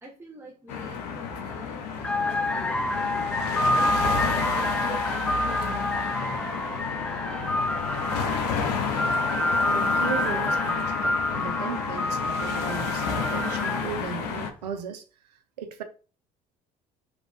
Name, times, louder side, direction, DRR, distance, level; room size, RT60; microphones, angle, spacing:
voice 1, 0.0-3.0 3.7-8.2, right 1 dB, 10° right, 0.8 m, -46 dB
sound 1, 0.7-14.5, left 6 dB, 80° left, 0.6 m, -30 dB
sound 2, 1.5-1.6 2.0-14.1, left 1 dB, 5° left, 0.5 m, -28 dB
voice 2, 9.7-15.0 15.6-15.8, right 7 dB, 85° right, 0.6 m, -36 dB
3.2 x 2.5 x 3.5 m
hypercardioid pair, 65°, 20 cm